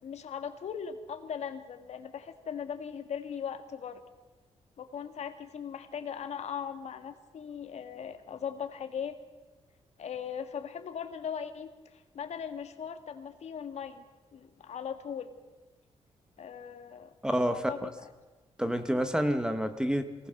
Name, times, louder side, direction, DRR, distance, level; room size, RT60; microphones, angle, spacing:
voice 1, 0.0-4.0 4.8-9.2 10.0-14.0 14.3-15.3 16.4-17.1 17.4-18.0, left 7 dB, 70° left, 8 dB, 1.8 m, -39 dB
voice 2, 17.2-17.9 18.6-20.3, equal, 5° right, 9 dB, 1.2 m, -29 dB
24.0 x 18.5 x 6.6 m, 1.2 s
cardioid pair, 110°, 12 cm